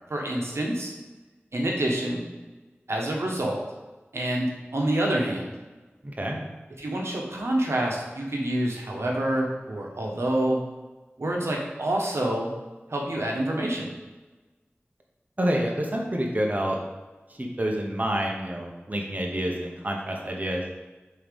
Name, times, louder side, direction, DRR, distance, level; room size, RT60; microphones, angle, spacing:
voice 1, 0.1-0.9 1.5-2.3 2.9-3.6 4.1-5.5 6.8-10.6 11.2-12.5 12.9-13.9, right 1 dB, 80° right, -1 dB, 1.1 m, -27 dB
voice 2, 15.4-16.8 17.4-20.6, right 1 dB, 35° right, 0 dB, 1.0 m, -28 dB
5.5 x 3.8 x 5.2 m, 1.2 s
wide cardioid pair, 45°, 4 cm